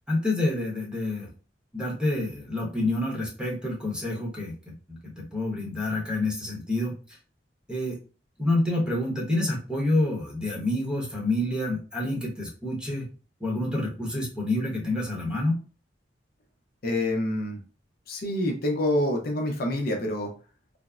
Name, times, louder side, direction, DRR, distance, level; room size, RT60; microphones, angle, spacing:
voice 1, 0.1-1.3 1.7-6.9 7.7-8.0 8.4-13.1 13.4-15.6, left 2 dB, 5° right, -2 dB, 0.8 m, -28 dB
voice 2, 16.8-17.6 18.1-20.3, left 1 dB, 55° left, 2 dB, 0.6 m, -27 dB
3.4 x 2.0 x 2.3 m, 0.36 s
head